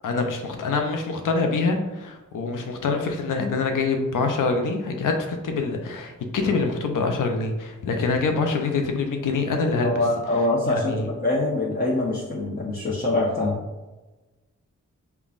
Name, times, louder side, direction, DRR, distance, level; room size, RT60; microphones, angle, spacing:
voice 1, 0.0-10.0 10.6-11.1, left 4 dB, 90° left, 4 dB, 0.5 m, -25 dB
voice 2, 9.8-13.6, left 2 dB, 30° left, -6 dB, 0.8 m, -24 dB
5.3 x 2.3 x 2.4 m, 1.1 s
cardioid pair, 45°, 31 cm